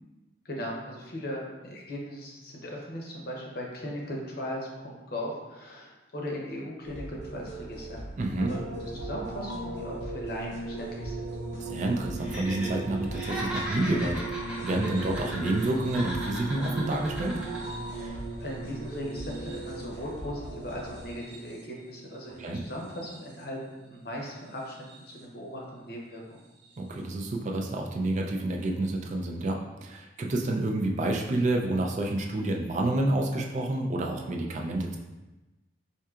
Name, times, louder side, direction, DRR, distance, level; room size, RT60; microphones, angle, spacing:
voice 1, 0.4-8.0 8.5-8.6 8.9-11.3 18.0-24.8 25.1-26.4, equal, 55° left, -1 dB, 0.7 m, -38 dB
sound 1, 6.8-21.1, equal, 90° left, 0.8 m, -42 dB
voice 2, 8.2-8.5 11.6-14.2 14.6-17.4 22.4-22.6 26.8-35.0, right 2 dB, 40° right, 1 dB, 0.4 m, -29 dB
sound 2, 8.4-23.6 24.5-25.2 26.6-26.8, right 4 dB, 80° right, 0.6 m, -39 dB
Laughter, 12.2-12.7 13.0-15.7 15.9-17.6 17.9-18.1, equal, 5° right, 0.6 m, -37 dB
4.4 x 2.7 x 2.4 m, 1.1 s
head